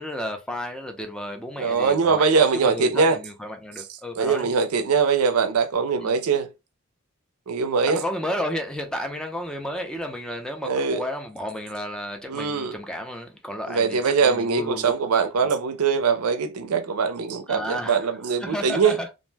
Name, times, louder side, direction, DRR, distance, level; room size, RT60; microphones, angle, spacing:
voice 1, 0.0-2.3 2.5-4.5 6.0-6.1 7.9-14.9 15.4-15.5 17.5-18.1 18.4-19.1, equal, 5° left, 0.4 m, -32 dB
voice 2, 1.6-3.2 4.2-6.5 7.5-8.0 10.6-11.0 12.3-12.7 13.7-19.0, right 5 dB, 80° right, 0.5 m, -22 dB
2.5 x 2.1 x 3.2 m
head